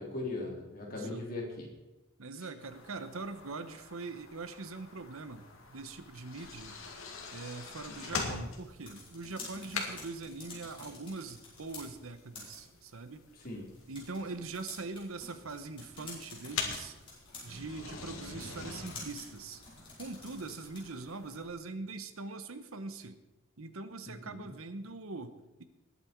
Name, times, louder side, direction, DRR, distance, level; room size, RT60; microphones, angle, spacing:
voice 1, 0.0-1.7 8.0-8.1 13.4-13.7 24.1-24.5, left 2 dB, 40° left, -2 dB, 3.7 m, -39 dB
voice 2, 0.9-1.3 2.2-5.4 5.7-6.8 7.3-13.2 13.9-17.0 17.4-19.6 20.0-23.2 23.6-25.6, right 3 dB, 75° right, 11 dB, 1.0 m, -42 dB
sound 1, 2.6-21.5, left 4 dB, 75° left, 2.4 m, -44 dB
sound 2, 8.7-21.1, left 3 dB, 25° left, 4.8 m, -50 dB
20.0 x 8.6 x 4.6 m, 1.0 s
head